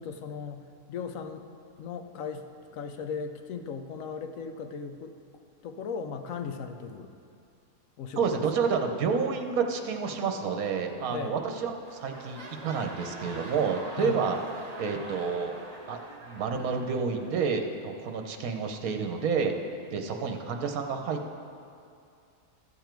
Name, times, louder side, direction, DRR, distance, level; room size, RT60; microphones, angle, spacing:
voice 1, 0.0-1.5 1.8-2.5 2.7-5.1 5.6-7.1 8.0-8.4 11.1-11.4 14.0-14.2, left 6 dB, 65° left, 7 dB, 1.0 m, -37 dB
voice 2, 8.2-14.4 14.8-15.5 15.9-19.5 19.9-21.4, right 5 dB, 70° right, 4 dB, 1.3 m, -29 dB
sound 1, 11.4-11.5 11.8-17.6 18.3-18.4, right 2 dB, 30° right, 1.0 m, -44 dB
13.0 x 7.1 x 4.5 m, 2.5 s
omnidirectional pair, 1.6 m